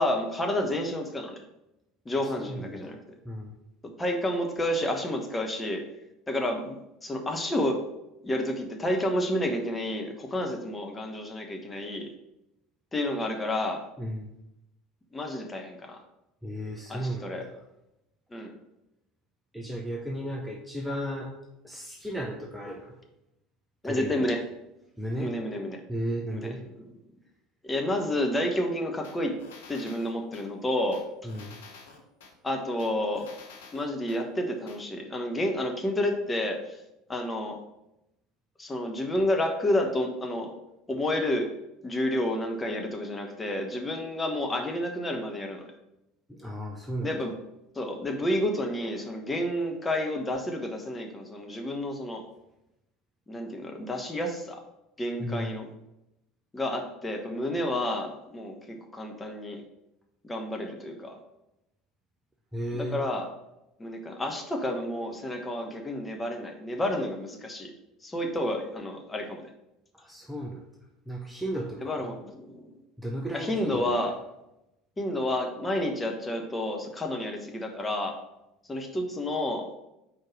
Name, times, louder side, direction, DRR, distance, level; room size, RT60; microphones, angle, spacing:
voice 1, 0.0-1.4 2.0-3.0 4.0-5.8 6.3-7.8 8.2-12.1 12.9-13.8 15.1-16.0 16.9-17.4 18.3-18.5 23.8-24.4 25.2-25.8 26.3-26.9 27.6-29.4 29.7-31.0 32.4-33.3 33.7-36.8 37.1-37.6 38.6-40.5 40.9-41.5 41.8-45.7 47.0-47.3 47.7-52.2 53.3-54.6 55.0-55.7 56.5-59.6 60.2-61.2 62.7-63.3 63.8-67.7 68.0-69.5 71.8-72.7 73.3-74.1 75.0-78.1 78.7-79.7, left 1 dB, 15° left, 3 dB, 1.1 m, -30 dB
voice 2, 2.4-3.0 3.2-3.5 14.0-14.3 16.4-17.6 19.5-21.3 21.6-22.9 23.8-24.3 25.0-25.3 25.9-26.6 31.2-31.6 46.3-47.2 55.2-55.5 62.5-63.0 69.9-70.6 71.1-72.1 73.0-74.0, equal, 5° right, 0 dB, 0.8 m, -34 dB
sound 1, 29.0-30.5 30.9-32.3 32.8-34.2 34.7-34.8, left 4 dB, 70° left, 0.8 m, -49 dB
4.7 x 4.5 x 4.8 m, 0.88 s
figure-of-eight pair, 70°, 0 cm